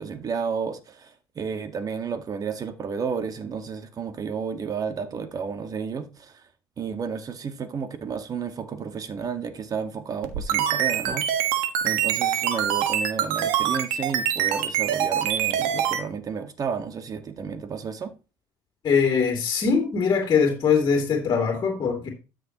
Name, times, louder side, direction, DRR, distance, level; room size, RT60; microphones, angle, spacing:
voice 1, 0.0-6.5 6.8-18.1, right 6 dB, 40° right, 1.6 m, -32 dB
sound 1, 10.2-16.0, right 10 dB, 80° right, 1.5 m, -24 dB
voice 2, 18.8-22.1, left 6 dB, 40° left, 2.7 m, -22 dB
13.0 x 6.6 x 3.0 m
supercardioid pair, 80°, 10 cm